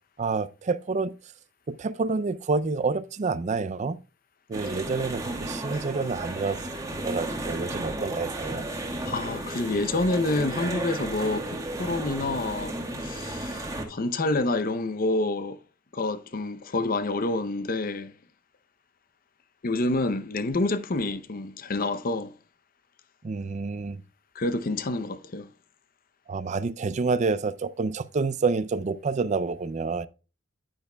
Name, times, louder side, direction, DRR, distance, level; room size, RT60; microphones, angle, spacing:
voice 1, 0.2-1.1 1.7-4.0 4.5-6.6 7.0-8.7 23.2-24.0 26.3-30.1, right 4 dB, 35° right, 0.4 m, -28 dB
sound 1, 4.5-13.8, right 1 dB, 15° right, 1.5 m, -33 dB
voice 2, 9.0-12.8 13.0-15.6 15.9-18.1 19.6-22.3 24.3-25.5, left 2 dB, 45° left, 0.6 m, -28 dB
9.6 x 9.4 x 2.2 m
head